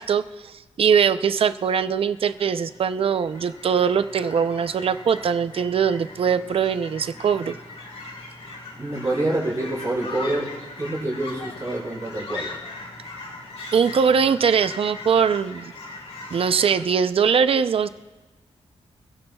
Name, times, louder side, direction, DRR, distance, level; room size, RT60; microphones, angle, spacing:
voice 1, 0.0-7.6 13.7-15.7 16.3-17.9, right 7 dB, 55° right, 12 dB, 0.5 m, -21 dB
Fowl / Chirp tweet, 2.0-16.8, left 2 dB, 85° left, 3.5 m, -41 dB
Screaming, 8.5-8.9 10.0-10.7 11.2-12.9, left 4 dB, 55° left, 1.4 m, -37 dB
voice 2, 8.8-12.5, right 1 dB, 30° right, -5 dB, 4.0 m, -27 dB
25.5 x 16.0 x 2.3 m, 1.2 s
wide cardioid pair, 125°, 11 cm